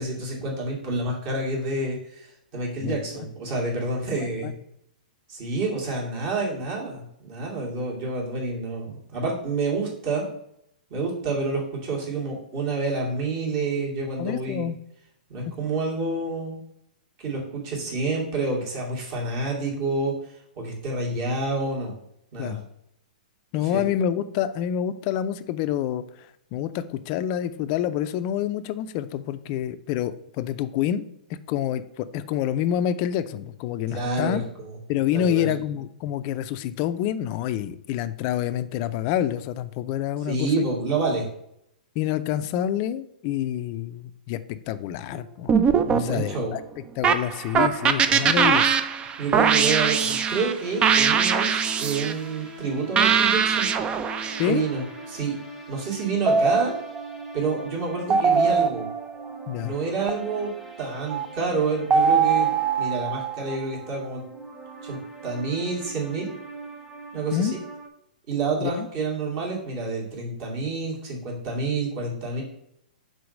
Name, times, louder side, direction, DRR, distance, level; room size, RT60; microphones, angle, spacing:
voice 1, 0.0-4.5 5.3-10.2 10.9-14.7 15.3-16.6 17.2-21.9 22.3-22.6 23.7-23.8 33.9-34.7 35.1-35.5 40.2-41.2 45.8-46.5 48.1-48.3 49.2-53.7 54.4-55.3 55.7-56.7 57.3-58.8 59.6-64.2 64.8-66.3 67.1-67.5 68.3-72.4, right 3 dB, 40° right, -2 dB, 2.4 m, -28 dB
voice 2, 14.2-14.8 22.4-22.6 23.5-26.0 26.5-31.1 31.5-34.4 34.9-40.7 42.0-45.5 45.9-46.6 47.0-48.8 54.4-54.6 59.5-59.7 67.3-67.6 68.6-68.9, left 10 dB, 40° left, 13 dB, 0.4 m, -27 dB
sound 1, 45.5-46.5 47.0-50.5 50.8-52.1 53.0-54.5 56.3-57.2 58.1-59.1 60.1-60.3 61.1-61.3 61.9-63.6, right 6 dB, 20° right, 0.4 m, -22 dB
sound 2, 50.6-67.9, right 3 dB, ahead, 0.9 m, -42 dB
4.7 x 4.1 x 5.2 m, 0.76 s
hypercardioid pair, 120°, 5 cm